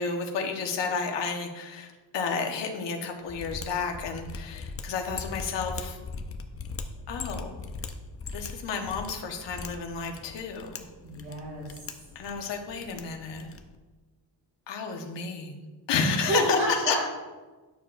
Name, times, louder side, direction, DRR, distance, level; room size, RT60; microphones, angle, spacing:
voice 1, 0.0-6.0 7.1-7.6 8.3-10.9 12.1-13.5 14.7-17.0, left 5 dB, 65° left, 3 dB, 1.2 m, -31 dB
Mechanisms, 3.3-13.7, left 4 dB, 30° left, 0.5 m, -40 dB
voice 2, 11.0-11.8 16.0-17.0, right 1 dB, 80° right, -5 dB, 2.5 m, -29 dB
11.0 x 6.7 x 2.5 m, 1.3 s
wide cardioid pair, 165°, 45 cm